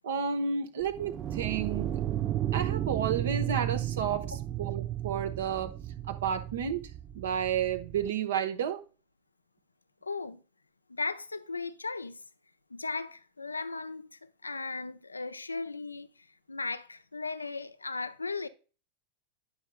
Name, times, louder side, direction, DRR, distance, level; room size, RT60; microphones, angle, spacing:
voice 1, 0.0-1.9 2.5-4.3 4.6-5.8 6.1-6.8 7.1-8.8, right 7 dB, 60° right, 1.0 m, -31 dB
sound 1, 0.8-8.1, right 12 dB, 30° right, 0.4 m, -34 dB
voice 2, 10.0-10.4 10.9-12.2 12.7-18.5, left 4 dB, 80° left, 0.4 m, -37 dB
11.0 x 6.5 x 2.3 m
figure-of-eight pair, 90°, 0 cm